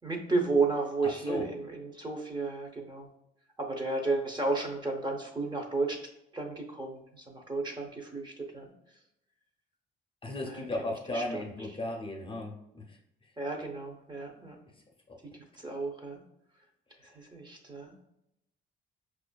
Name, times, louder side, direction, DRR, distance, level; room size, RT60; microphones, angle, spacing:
voice 1, 0.0-3.1 3.6-6.0 6.3-8.7 10.4-11.7 13.4-14.6 15.3-16.2 17.0-17.9, right 3 dB, 20° right, 1 dB, 0.7 m, -33 dB
voice 2, 10.2-12.8 15.1-15.2, left 1 dB, 25° left, 2 dB, 0.6 m, -35 dB
4.8 x 2.4 x 2.2 m, 0.82 s
cardioid pair, 90°, 20 cm